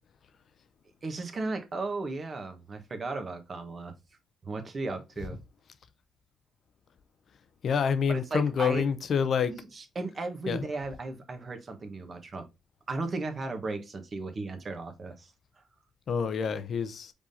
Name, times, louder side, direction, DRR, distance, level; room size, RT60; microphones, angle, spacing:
voice 1, 1.0-3.9 4.4-5.4 8.1-8.9 9.5-12.5 12.9-15.3, right 3 dB, 45° right, 1.2 m, -35 dB
voice 2, 7.6-9.5 10.5-10.6 16.1-17.1, left 6 dB, 60° left, 0.6 m, -27 dB
4.9 x 3.7 x 2.7 m
hypercardioid pair, 55°, 0 cm